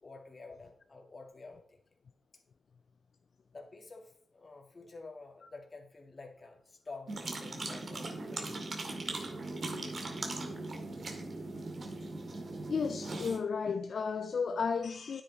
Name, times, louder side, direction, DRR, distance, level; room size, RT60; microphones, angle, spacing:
voice 1, 0.0-1.8 3.5-9.2, left 3 dB, 40° left, 2.1 m, -50 dB
sound 1, 7.1-13.4, right 2 dB, 55° right, 2.1 m, -39 dB
voice 2, 12.7-15.2, left 5 dB, 70° left, 0.5 m, -33 dB
9.8 x 8.4 x 4.1 m
cardioid pair, 60°, 0 cm